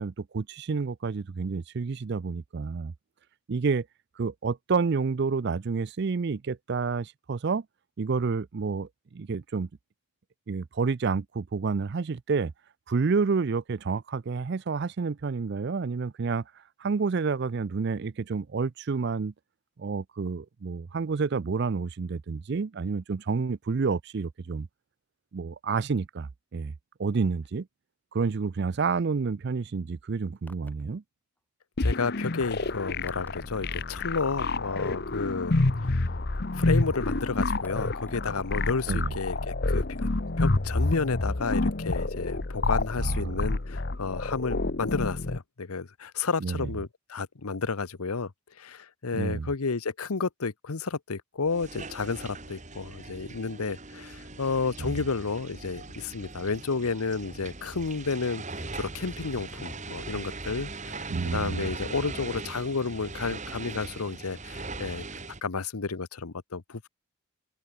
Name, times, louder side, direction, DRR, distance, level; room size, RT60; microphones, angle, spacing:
voice 1, 0.0-2.9 3.5-3.9 4.2-7.6 8.0-9.7 10.5-12.5 12.9-16.4 16.8-19.3 19.8-24.7 25.3-26.7 27.0-27.7 28.1-31.0 38.9-39.1 43.0-43.3 46.4-46.7 49.1-49.5 54.8-55.0 61.1-61.7, right 4 dB, 50° right, 0.4 m, -29 dB
sound 1, 30.3-30.9 31.4-31.5 32.1-32.2 32.7-32.8 33.0-33.7 34.8-36.5 36.9-38.3 38.7-38.8, left 1 dB, 10° left, 4.3 m, -57 dB
voice 2, 31.8-35.6 35.8-36.0 36.5-40.1 40.4-48.3 48.6-65.0 65.4-66.9, left 4 dB, 85° left, 0.9 m, -31 dB
sound 2, 31.8-45.4, left 2 dB, 45° left, 1.0 m, -28 dB
sound 3, 51.5-65.4, right 3 dB, 35° right, 3.5 m, -40 dB
head